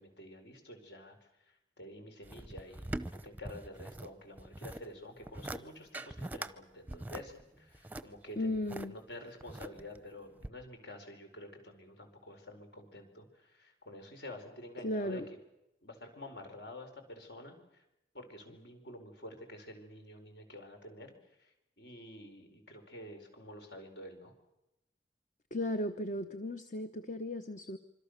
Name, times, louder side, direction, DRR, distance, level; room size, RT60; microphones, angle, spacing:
voice 1, 0.0-15.2 15.8-17.8 18.1-24.3, left 1 dB, 65° left, 5 dB, 4.9 m, -49 dB
sound 1, 2.2-4.1 4.4-4.9 5.2-5.6 5.9-6.5 6.9-8.9 9.4-10.0 10.4-10.5, right 1 dB, 10° right, 0.8 m, -42 dB
voice 2, 8.4-8.9 14.8-15.3 25.5-27.8, left 1 dB, 45° left, 9 dB, 1.0 m, -35 dB
26.0 x 25.5 x 6.7 m, 0.92 s
head